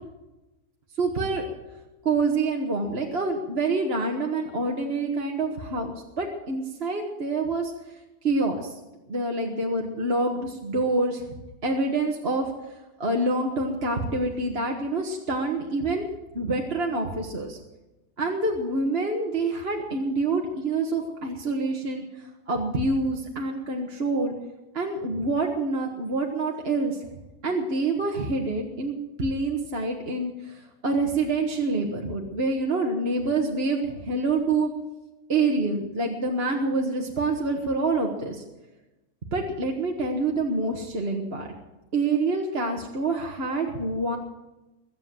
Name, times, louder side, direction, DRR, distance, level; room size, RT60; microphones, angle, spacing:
voice 1, 1.0-1.4 2.0-8.8 9.1-11.4 11.6-16.0 16.3-17.6 18.2-24.3 24.7-27.0 27.4-34.7 35.3-38.4 39.3-41.5 41.9-44.2, right 3 dB, 40° right, 1 dB, 1.7 m, -27 dB
22.5 x 7.9 x 7.6 m, 1.0 s
omnidirectional pair, 1.8 m